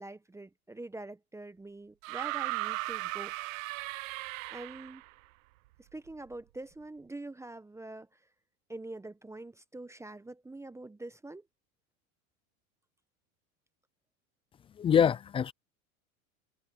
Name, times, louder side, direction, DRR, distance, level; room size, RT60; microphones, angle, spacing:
voice 1, 0.0-3.3 4.5-5.0 5.8-8.2 8.7-11.5, right 2 dB, 5° right, 0.9 m, -45 dB
sound 1, 2.0-5.1 6.3-6.4, right 22 dB, 65° right, 1.1 m, -36 dB
voice 2, 14.8-15.5, left 8 dB, 15° left, 0.4 m, -24 dB
supercardioid pair, 120°, 43 cm